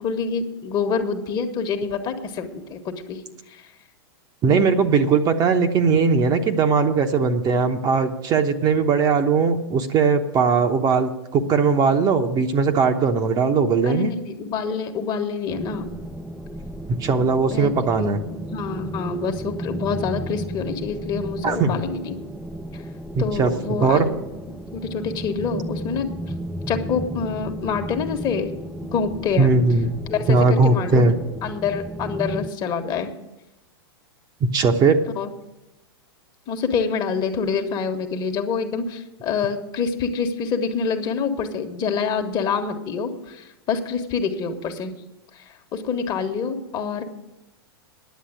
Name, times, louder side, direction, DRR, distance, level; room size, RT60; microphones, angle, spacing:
voice 1, 0.0-3.6 4.5-4.6 13.8-15.9 17.5-17.7 18.0-22.2 22.7-22.8 23.2-24.2 24.7-26.1 26.7-28.5 28.8-29.5 30.1-31.0 31.4-33.1 35.2-35.3 36.5-44.9 45.3-47.0, left 5 dB, 35° left, 6 dB, 1.4 m, -26 dB
voice 2, 4.4-14.1 17.0-18.2 21.4-21.8 23.2-23.5 23.8-24.1 29.4-29.9 30.3-31.2 34.4-35.0, right 4 dB, 30° right, 5 dB, 1.0 m, -19 dB
sound 1, 15.5-32.5, equal, ahead, 0.5 m, -34 dB
10.5 x 7.4 x 8.9 m, 0.97 s
hypercardioid pair, 115°, 13 cm